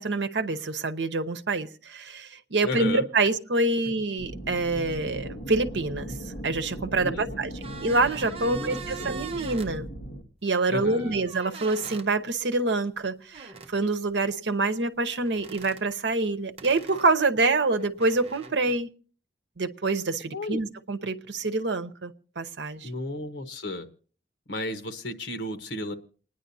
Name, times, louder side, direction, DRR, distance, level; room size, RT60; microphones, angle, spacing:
voice 1, 0.0-6.1 6.4-7.5 7.8-9.9 10.4-18.9 19.6-22.9, right 3 dB, 75° right, 9 dB, 0.9 m, -26 dB
voice 2, 2.6-3.1 7.0-7.4 8.5-9.1 10.7-11.1 20.3-20.6 22.8-23.9 24.5-25.9, left 1 dB, 85° left, 8 dB, 1.2 m, -33 dB
sound 1, 4.2-10.2, right 1 dB, 40° left, 1.8 m, -38 dB
sound 2, 7.6-9.7 10.8-12.1 13.3-13.7 15.2-15.8 16.6-18.8, right 5 dB, 35° right, 0.8 m, -43 dB
28.5 x 10.0 x 2.7 m, 0.41 s
head